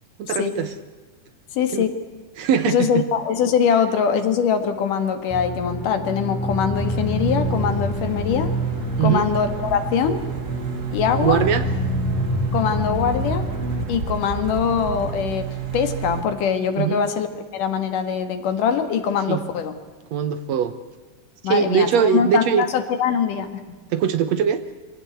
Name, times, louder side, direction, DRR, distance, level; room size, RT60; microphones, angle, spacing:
voice 1, 0.2-0.7 1.7-1.9 2.4-3.0 9.0-9.3 11.2-11.7 16.8-17.0 19.3-19.4 20.1-20.7 21.4-22.7 23.9-24.6, right 8 dB, 70° right, 11 dB, 1.9 m, -21 dB
voice 2, 1.5-1.9 2.7-8.5 9.0-10.2 10.9-11.4 12.5-13.5 13.9-17.3 17.5-19.7 21.4-23.5, left 7 dB, 80° left, 8 dB, 3.3 m, -22 dB
sound 1, 5.3-13.8, equal, 5° left, 4.4 m, -27 dB
sound 2, 6.7-16.2, right 5 dB, 45° right, 1.3 m, -30 dB
24.0 x 17.0 x 8.0 m, 1.4 s
omnidirectional pair, 3.7 m